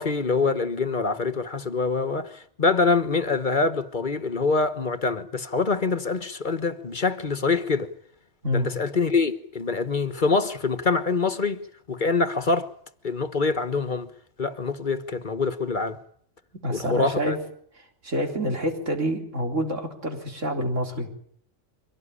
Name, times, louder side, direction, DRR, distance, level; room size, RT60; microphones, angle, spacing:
voice 1, 0.0-7.9 8.5-11.6 11.9-12.7 13.0-14.1 14.4-16.0 16.7-17.4, left 4 dB, 40° left, 1.3 m, -25 dB
voice 2, 16.6-17.4 18.0-21.1, equal, 90° right, 4.2 m, -27 dB
24.0 x 18.0 x 9.9 m
omnidirectional pair, 1.2 m